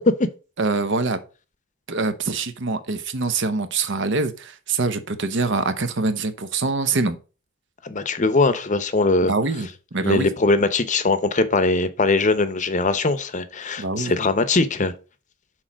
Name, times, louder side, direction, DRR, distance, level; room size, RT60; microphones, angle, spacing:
voice 1, 0.6-1.2 1.9-7.2 9.3-10.3 13.8-14.1, right 3 dB, 60° right, 0.9 m, -24 dB
voice 2, 7.8-9.3 10.0-14.9, left 3 dB, 35° left, 0.7 m, -21 dB
6.3 x 4.3 x 6.2 m
head